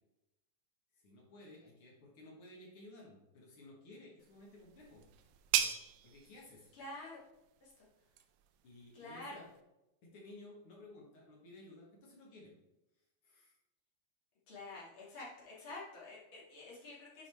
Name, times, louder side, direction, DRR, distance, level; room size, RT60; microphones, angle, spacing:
voice 1, 0.9-5.0 6.0-6.7 8.6-9.5 10.0-12.5 13.2-13.6, left 2 dB, 65° left, -3 dB, 1.3 m, -55 dB
sound 1, 4.2-9.6, right 10 dB, 85° right, 2.6 m, -40 dB
voice 2, 6.7-7.2 7.6-7.9 8.9-9.4 14.5-17.3, left 2 dB, 40° left, -6 dB, 2.3 m, -48 dB
9.0 x 4.9 x 3.4 m, 0.94 s
omnidirectional pair, 4.7 m